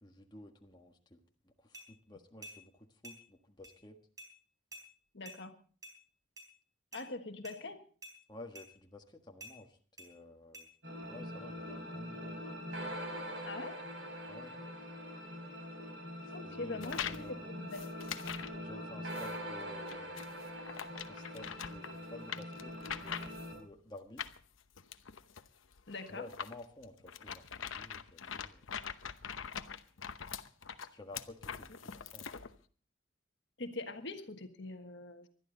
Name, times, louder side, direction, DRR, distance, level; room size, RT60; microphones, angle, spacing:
voice 1, 0.0-1.2 1.6-4.0 8.3-10.7 11.1-12.4 14.3-14.6 16.2-17.4 18.6-20.2 21.0-23.3 23.5-24.3 26.1-28.7 30.9-32.4, left 2 dB, 20° left, 2 dB, 1.5 m, -52 dB
sound 1, 1.7-1.9 2.4-2.6 3.0-3.2 3.6-3.8 4.2-4.3 4.7-4.9 5.3-5.4 5.8-6.0 6.4-6.5 6.9-7.1 7.5-7.6 8.0-8.2 8.6-8.7 9.4-9.6 10.0-10.1 10.5-10.7, right 1 dB, 20° right, 3.9 m, -50 dB
voice 2, 5.1-5.5 6.9-7.8 13.4-13.8 16.3-18.1 25.9-26.3 33.6-35.3, left 2 dB, 60° left, 6 dB, 1.4 m, -43 dB
sound 2, 10.8-23.5, equal, 65° right, 4.9 m, -43 dB
sound 3, 16.8-17.3 17.7-18.6 19.1-19.3 19.9-23.6 24.2-32.5, left 7 dB, 90° left, 0.9 m, -43 dB
20.5 x 12.5 x 3.9 m, 0.42 s
head